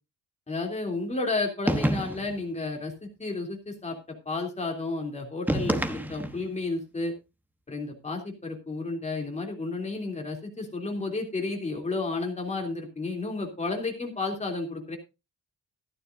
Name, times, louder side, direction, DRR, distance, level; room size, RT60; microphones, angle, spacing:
voice 1, 0.5-4.0 4.2-7.1 7.7-15.0, left 3 dB, 20° left, 2 dB, 3.2 m, -32 dB
sound 1, 1.7-2.4 5.5-6.5, right 1 dB, 5° right, 1.1 m, -28 dB
14.5 x 12.5 x 2.6 m, 0.27 s
cardioid pair, 135°, 31 cm